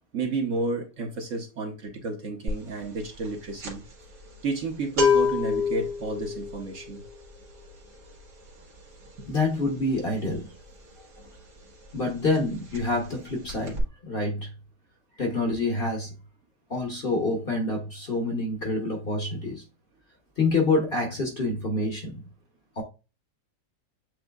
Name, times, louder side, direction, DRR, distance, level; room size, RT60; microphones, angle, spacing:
voice 1, 0.1-3.8 4.4-7.0, right 3 dB, 55° right, 1.1 m, -31 dB
sound 1, 2.5-2.7 3.0-11.6 11.9-12.1 12.3-13.2 13.5-13.8, left 5 dB, 80° right, 2.2 m, -28 dB
voice 2, 9.3-10.5 11.9-14.5 15.2-16.1 16.7-19.6 20.4-22.2 22.8-22.9, left 2 dB, 40° left, 0.9 m, -27 dB
7.8 x 2.7 x 2.3 m
omnidirectional pair, 1.8 m